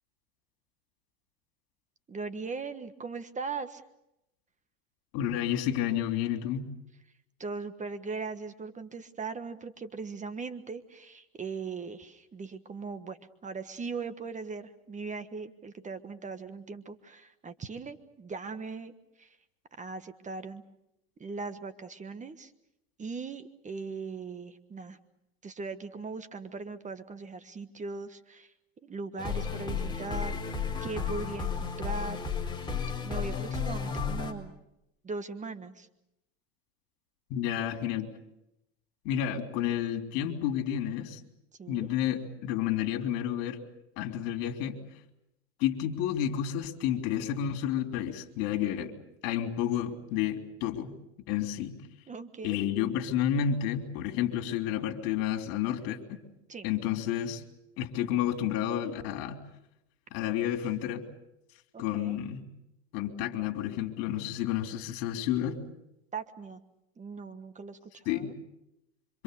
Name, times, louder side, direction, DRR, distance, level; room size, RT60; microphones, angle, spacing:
voice 1, 2.1-3.8 7.4-19.4 19.7-20.6 21.2-22.5 23.0-25.0 25.4-28.5 28.8-30.4 30.8-32.2 33.0-34.5 35.0-35.9 41.6-41.9 52.1-52.6 56.5-56.7 61.7-62.2 66.1-66.6 67.0-68.3, right 4 dB, 20° right, 10 dB, 1.4 m, -39 dB
voice 2, 5.1-6.7 37.3-38.1 39.1-41.2 41.7-43.6 44.0-44.8 45.6-48.9 49.2-50.9 51.3-51.8 52.4-56.2 56.6-57.4 57.8-59.4 60.1-61.0 61.8-62.4 62.9-65.6 68.1-68.3, left 10 dB, 60° left, 5 dB, 3.5 m, -30 dB
sound 1, 29.2-34.3, left 5 dB, 10° left, 4.3 m, -33 dB
26.5 x 25.5 x 6.9 m, 0.86 s
supercardioid pair, 125°, 37 cm